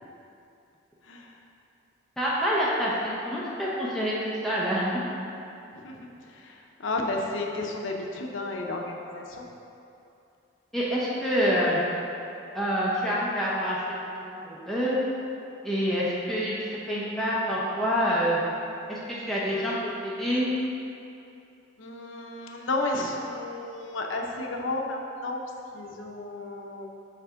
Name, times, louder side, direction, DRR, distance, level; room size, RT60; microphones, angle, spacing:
voice 1, 2.2-5.1 10.7-11.8 12.5-13.8 14.2-15.0 15.6-16.6 16.9-18.4 18.9-19.0 19.3-20.5, equal, ahead, -8 dB, 0.8 m, -27 dB
voice 2, 5.7-6.1 6.4-9.5 21.8-25.4 25.7-26.9, left 2 dB, 75° left, 1 dB, 0.7 m, -32 dB
5.8 x 4.3 x 5.7 m, 2.7 s
head